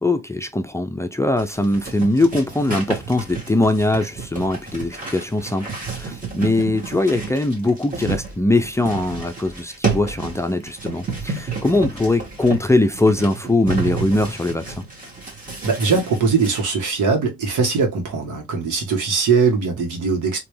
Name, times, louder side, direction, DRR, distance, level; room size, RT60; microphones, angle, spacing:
voice 1, 0.0-14.8, left 2 dB, 10° left, 0.5 m, -21 dB
sound 1, 1.4-16.6, right 5 dB, 25° right, 1.9 m, -31 dB
voice 2, 15.6-20.4, right 5 dB, 75° right, 1.7 m, -20 dB
3.3 x 3.0 x 3.1 m
cardioid pair, 90°, 30 cm